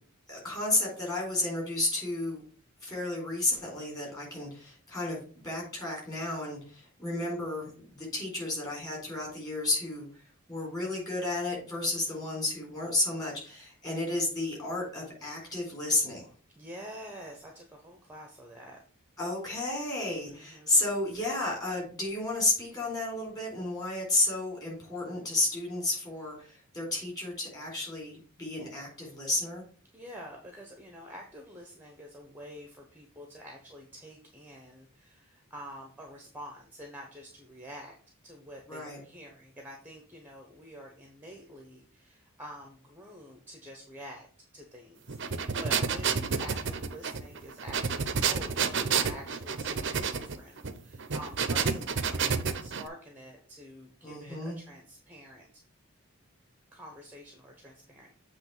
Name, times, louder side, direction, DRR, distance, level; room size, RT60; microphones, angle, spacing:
voice 1, 0.3-2.4 2.8-10.1 10.5-16.3 19.2-29.6 38.7-39.0 54.0-54.6, left 2 dB, 15° left, -3 dB, 4.0 m, -32 dB
voice 2, 11.9-12.3 16.6-18.8 20.3-20.8 29.9-38.0 38.2-44.3 44.5-55.6 56.7-58.2, equal, 10° right, 1 dB, 1.0 m, -47 dB
sound 1, 45.1-52.9, right 6 dB, 55° right, 0.7 m, -30 dB
7.9 x 3.3 x 6.0 m, 0.42 s
head